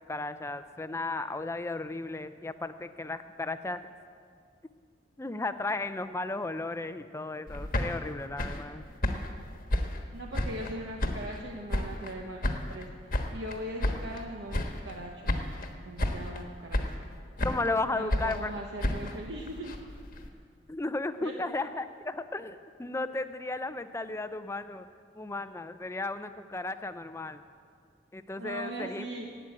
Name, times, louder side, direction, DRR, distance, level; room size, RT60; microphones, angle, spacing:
voice 1, 0.0-3.8 5.2-8.9 17.4-18.5 20.7-24.9 25.2-27.4 28.1-29.1, left 2 dB, 15° left, 11 dB, 0.5 m, -34 dB
sound 1, 7.5-10.7 11.0-12.1 12.4-14.2 14.5-15.0 15.3-15.7 16.0-16.4 16.7-17.8 18.1-20.3, left 1 dB, 50° left, 1.2 m, -32 dB
voice 2, 10.1-12.9 13.3-15.4 15.8-17.0 17.9-19.8 21.2-21.3 28.4-29.3, right 1 dB, 65° right, 0 dB, 1.0 m, -39 dB
12.0 x 9.1 x 8.5 m, 2.1 s
head